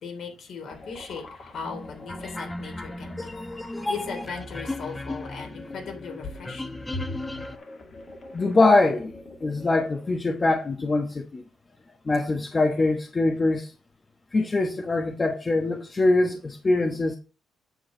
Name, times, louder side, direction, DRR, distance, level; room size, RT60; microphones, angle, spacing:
voice 1, 0.0-3.3 3.9-7.2, left 4 dB, 65° left, 3.5 m, -37 dB
sound 1, 0.7-10.2, left 2 dB, 45° left, 2.4 m, -46 dB
sound 2, 1.6-7.6, left 2 dB, 15° left, 0.8 m, -35 dB
voice 2, 8.3-9.1 9.4-11.4 12.0-13.7 14.3-17.1, left 2 dB, 30° left, 1.1 m, -23 dB
9.3 x 7.1 x 3.9 m
cardioid pair, 90°, 0 cm